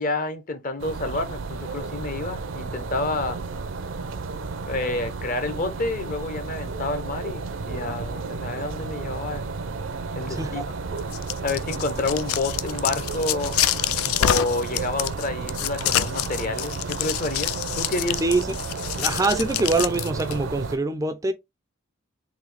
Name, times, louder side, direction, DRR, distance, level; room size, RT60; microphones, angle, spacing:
voice 1, 0.0-3.4 4.7-9.5 10.1-10.6 11.4-13.5 14.2-18.2, left 2 dB, 40° left, 0.7 m, -29 dB
sound 1, 0.8-20.8, right 4 dB, 65° right, 0.5 m, -33 dB
voice 2, 10.3-10.6 18.2-18.5 18.9-21.3, right 2 dB, 15° right, 0.4 m, -24 dB
sound 2, 11.0-20.3, left 12 dB, 85° left, 0.3 m, -27 dB
3.9 x 2.7 x 3.2 m
head